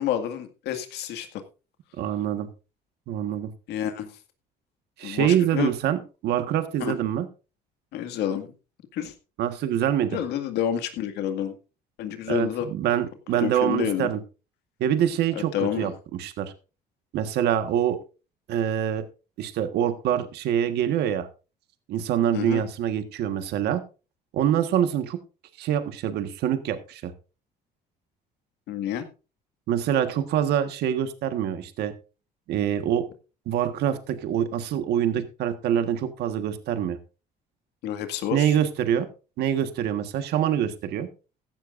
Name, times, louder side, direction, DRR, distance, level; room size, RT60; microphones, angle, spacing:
voice 1, 0.0-1.4 3.7-4.2 5.0-5.7 6.8-7.0 7.9-8.5 8.9-9.1 10.1-11.6 12.0-12.7 13.4-14.1 15.3-15.9 22.3-22.6 28.7-29.1 37.8-38.5, left 10 dB, 80° left, 8 dB, 2.0 m, -29 dB
voice 2, 2.0-2.5 3.1-3.5 5.0-7.3 9.4-10.2 12.3-14.2 14.8-15.9 16.2-16.5 17.1-18.0 18.5-19.0 19.4-21.3 21.9-23.8 24.3-25.2 25.6-27.1 29.7-31.9 32.5-33.0 33.5-37.0 38.3-39.1 39.4-41.1, right 10 dB, 75° right, 8 dB, 1.5 m, -25 dB
15.5 x 12.5 x 2.6 m, 0.32 s
cardioid pair, 110°, 17 cm